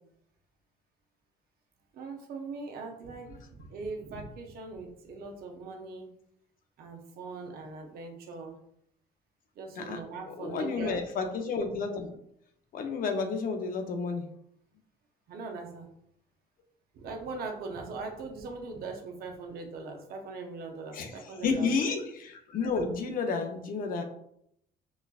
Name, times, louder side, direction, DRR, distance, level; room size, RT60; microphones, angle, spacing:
voice 1, 1.9-6.1 6.8-8.6 9.6-11.0 15.3-15.9 16.9-21.7, right 3 dB, 65° right, 3 dB, 0.7 m, -40 dB
voice 2, 10.3-12.2 12.7-14.3 20.9-24.0, left 4 dB, 55° left, 5 dB, 0.6 m, -31 dB
4.2 x 2.3 x 2.4 m, 0.73 s
cardioid pair, 110°, 17 cm